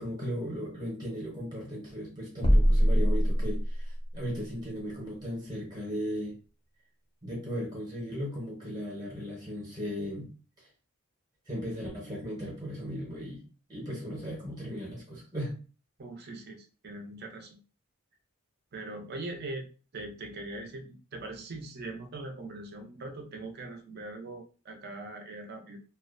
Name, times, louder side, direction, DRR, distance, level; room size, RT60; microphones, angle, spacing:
voice 1, 0.0-6.4 7.2-10.3 10.6-10.7 11.5-13.4 13.7-15.6, equal, 20° right, -3 dB, 0.8 m, -37 dB
sound 1, 2.4-4.0, equal, 25° left, 0.6 m, -23 dB
voice 2, 16.0-17.6 18.7-19.6 19.9-25.8, right 2 dB, 45° right, 3 dB, 0.5 m, -41 dB
2.4 x 2.1 x 2.4 m, 0.36 s
head